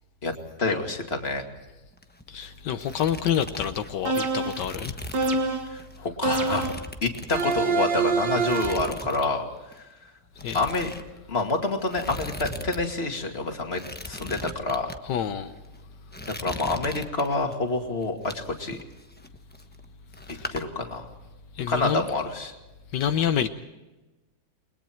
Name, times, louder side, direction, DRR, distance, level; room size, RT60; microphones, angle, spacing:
voice 1, 0.6-1.4 5.7-6.7 7.0-9.5 9.8-9.9 10.5-10.9 11.3-14.9 16.3-18.8 20.5-21.1 21.7-22.5, left 3 dB, 35° left, 2.6 m, -27 dB
sound 1, 1.9-2.4 2.7-5.4 5.8-6.0 6.4-8.0 8.4-9.3 9.6-9.8 10.4-12.8 13.1-13.2 13.7-15.0 15.6-15.8 16.1-17.6 18.0-19.9 20.1-20.6, left 1 dB, 5° left, 0.9 m, -39 dB
voice 2, 2.3-4.9 10.4-10.6 15.1-15.6 20.3-20.5 21.6-22.0 22.9-23.5, left 9 dB, 85° left, 1.6 m, -27 dB
sound 2, 4.1-4.7 5.1-5.8 6.2-6.9 7.3-8.9, right 4 dB, 85° right, 2.3 m, -26 dB
29.5 x 21.5 x 4.5 m
omnidirectional pair, 1.8 m